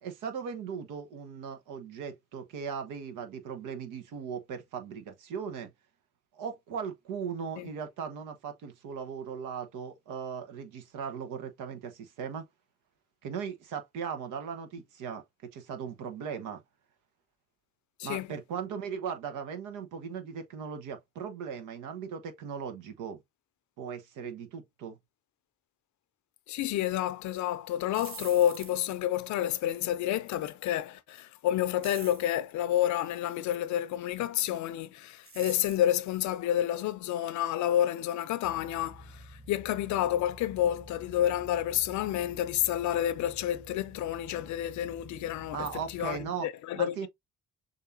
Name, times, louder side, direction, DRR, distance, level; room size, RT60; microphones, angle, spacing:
voice 1, 0.0-5.7 6.3-12.4 13.2-16.6 18.0-23.2 23.8-25.0 45.5-46.5 46.8-47.1, right 7 dB, 70° right, 1.0 m, -38 dB
voice 2, 26.5-47.1, left 12 dB, 60° left, 0.6 m, -29 dB
sound 1, 27.8-29.0 31.8-32.3 35.2-35.9, right 4 dB, 40° right, 1.4 m, -45 dB
sound 2, 38.4-46.3, right 1 dB, 20° right, 1.5 m, -51 dB
6.5 x 2.6 x 2.6 m
hypercardioid pair, 50°, 32 cm